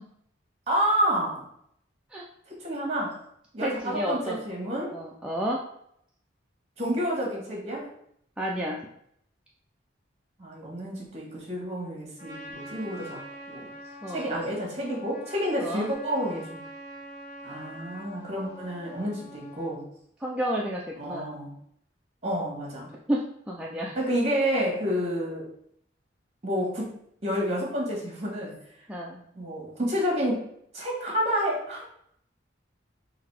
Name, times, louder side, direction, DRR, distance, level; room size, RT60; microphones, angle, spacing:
voice 1, 0.7-1.5 2.5-3.2 3.5-4.9 6.8-7.9 10.4-13.2 13.5-13.7 14.1-16.5 17.4-19.8 21.0-21.5 22.2-22.9 23.9-25.5 26.4-26.9 27.2-28.6 29.3-30.4 30.7-31.8, equal, 35° right, -2 dB, 1.5 m, -29 dB
voice 2, 3.6-4.4 4.9-5.6 8.4-8.8 14.0-14.3 15.6-15.9 20.2-21.3 23.1-24.0 28.9-29.2, equal, 5° right, -4 dB, 0.4 m, -31 dB
Trumpet, 12.2-19.8, left 1 dB, 40° left, 1.6 m, -44 dB
4.0 x 2.8 x 4.7 m, 0.70 s
head